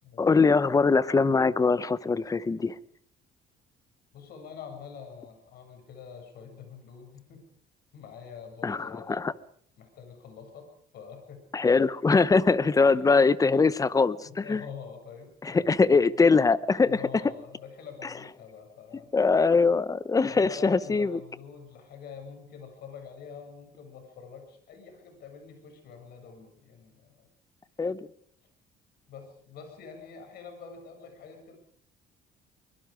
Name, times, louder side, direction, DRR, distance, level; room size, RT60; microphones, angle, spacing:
voice 1, 0.2-2.8 8.6-9.3 11.5-14.6 15.4-17.0 19.1-21.2 27.8-28.1, left 4 dB, 20° left, 0.9 m, -22 dB
voice 2, 4.1-7.5 7.9-9.4 9.8-11.7 12.6-13.0 14.3-16.1 16.8-19.1 20.2-27.3 29.1-31.6, left 6 dB, 70° left, 7.3 m, -45 dB
24.0 x 22.0 x 5.1 m
cardioid pair, 110°, 17 cm